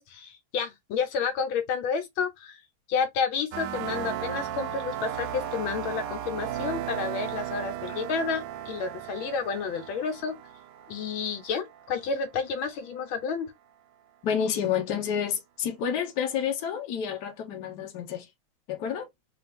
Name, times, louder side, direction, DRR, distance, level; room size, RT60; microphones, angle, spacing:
voice 1, 0.1-2.6 2.9-10.3 10.9-13.5, left 5 dB, 80° left, 1.6 m, -30 dB
sound 1, 3.5-12.1, right 11 dB, 75° right, 1.1 m, -36 dB
voice 2, 14.2-18.3 18.7-19.1, left 8 dB, 60° left, 1.4 m, -29 dB
4.2 x 2.5 x 3.5 m
omnidirectional pair, 2.2 m